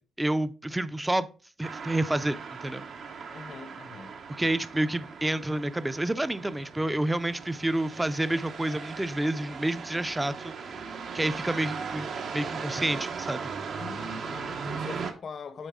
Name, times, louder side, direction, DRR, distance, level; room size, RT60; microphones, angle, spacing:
voice 1, 0.2-1.3 1.6-2.8 4.4-10.5 11.1-13.5, right 1 dB, 10° right, 0.5 m, -29 dB
sound 1, 1.6-15.1, right 5 dB, 65° right, 0.9 m, -38 dB
voice 2, 3.3-4.2 13.8-15.7, left 5 dB, 55° left, 0.8 m, -42 dB
8.9 x 4.0 x 3.6 m
cardioid pair, 105°, 0 cm